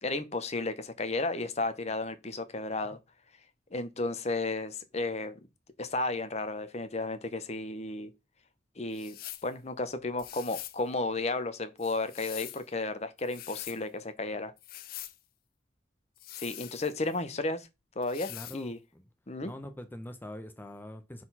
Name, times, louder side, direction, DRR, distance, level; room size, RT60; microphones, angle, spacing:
voice 1, 0.0-3.0 3.7-5.4 5.8-8.1 8.8-9.2 9.4-14.5 16.4-17.7 18.0-18.8 19.3-19.5, left 2 dB, 35° left, 0.8 m, -33 dB
sound 1, 8.9-9.5 10.2-10.8 11.8-12.6 13.2-13.8 14.6-15.2 16.2-17.2 18.0-18.6, left 14 dB, 50° left, 0.5 m, -44 dB
voice 2, 18.3-19.0 19.4-21.2, left 1 dB, 10° left, 0.7 m, -44 dB
4.8 x 4.1 x 5.5 m
head